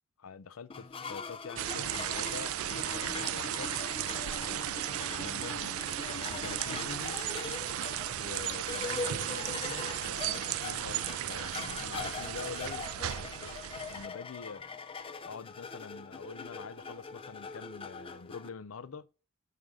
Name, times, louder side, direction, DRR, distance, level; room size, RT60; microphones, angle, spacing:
voice 1, 0.2-3.7 4.4-7.2 8.2-14.7 15.2-19.1, left 5 dB, 75° left, 0.5 m, -46 dB
sound 1, 0.7-18.5, left 5 dB, 25° left, 0.5 m, -42 dB
sound 2, 1.6-14.1, right 12 dB, 80° right, 0.3 m, -35 dB
5.3 x 5.0 x 6.1 m
head